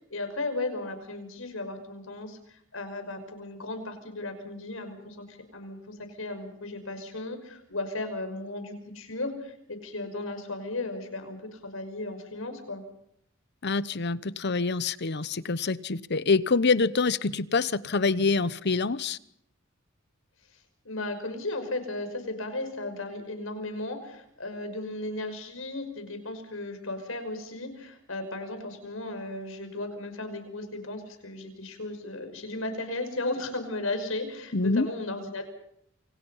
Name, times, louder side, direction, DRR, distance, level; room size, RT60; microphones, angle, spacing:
voice 1, 0.0-12.8 20.8-35.4, left 2 dB, 80° left, 8 dB, 5.7 m, -35 dB
voice 2, 13.6-19.2 34.5-34.9, left 4 dB, 55° left, 17 dB, 0.9 m, -26 dB
28.5 x 26.5 x 5.7 m, 0.72 s
head